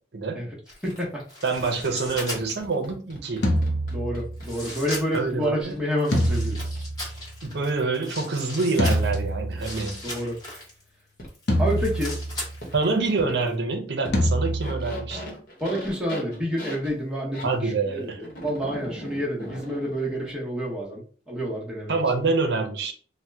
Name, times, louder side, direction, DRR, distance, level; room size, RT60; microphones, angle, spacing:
voice 1, 0.1-0.5 1.4-3.5 5.1-5.8 7.4-10.0 12.7-15.4 17.4-18.2 21.9-22.9, right 3 dB, 65° right, 4 dB, 0.6 m, -26 dB
sound 1, 0.7-2.8 3.6-3.7 4.4-5.3 6.0-10.8 11.3-13.1 13.3-13.5, left 1 dB, 20° left, 1.1 m, -38 dB
voice 2, 0.8-1.2 3.9-6.7 10.0-10.4 11.6-12.2 15.6-22.0, equal, 5° right, -4 dB, 0.9 m, -29 dB
sound 2, 1.5-5.9 6.7-6.8 8.1-8.2 8.9-9.0 9.7-9.8 11.2-11.3 11.8-11.9 12.6-12.8 13.2-13.3 14.0-14.2 14.4-17.5 18.2-20.3, equal, 50° left, 1.0 m, -39 dB
sound 3, 3.4-4.6 6.1-7.6 8.8-10.0 11.5-12.7 14.1-15.3, equal, 70° left, 0.6 m, -26 dB
2.8 x 2.1 x 3.3 m, 0.42 s
head